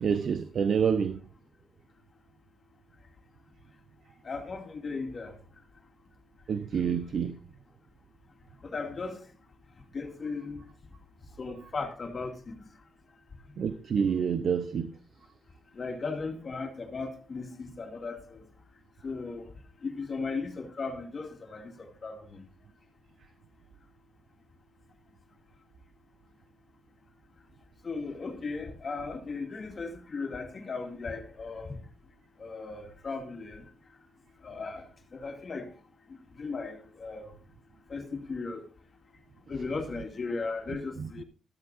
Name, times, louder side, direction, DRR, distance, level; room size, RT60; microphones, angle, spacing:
voice 1, 0.0-1.2 6.5-7.3 13.6-14.9, right 7 dB, 60° right, 0.8 m, -27 dB
voice 2, 4.2-5.4 8.6-9.2 9.9-10.6 11.4-12.6 15.7-18.4 19.0-19.5 19.8-22.4 27.8-31.8 32.4-33.6 34.4-34.8 35.1-35.7 36.4-37.3 37.9-38.6 39.5-41.2, left 4 dB, 40° left, 2.4 m, -36 dB
13.5 x 12.5 x 2.6 m
cardioid pair, 130°, 0 cm